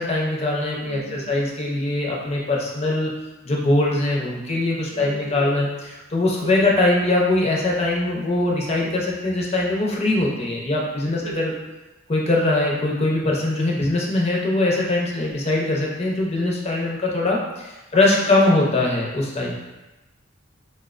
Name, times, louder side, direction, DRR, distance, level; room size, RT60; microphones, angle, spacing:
voice 1, 0.0-3.1 3.4-5.7 6.1-11.5 12.1-19.5, left 2 dB, 30° left, -2 dB, 0.5 m, -22 dB
voice 2, 0.8-1.4 4.9-5.6 6.3-6.7 11.1-11.6 15.1-15.4 17.9-18.2 18.6-18.7, right 2 dB, 65° right, 1 dB, 0.4 m, -38 dB
4.3 x 2.1 x 2.4 m, 1.1 s
head